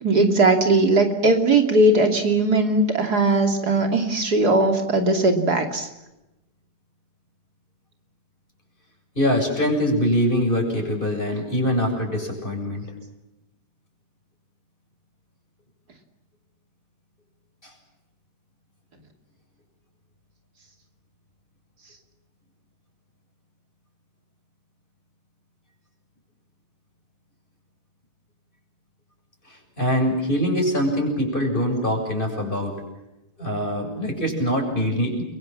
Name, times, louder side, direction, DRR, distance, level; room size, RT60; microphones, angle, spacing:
voice 1, 0.0-5.9, right 2 dB, 75° right, 4 dB, 3.5 m, -19 dB
voice 2, 9.2-12.9 29.8-32.8 33.4-35.2, equal, 30° left, 2 dB, 7.6 m, -23 dB
30.0 x 24.0 x 7.4 m, 0.95 s
omnidirectional pair, 1.7 m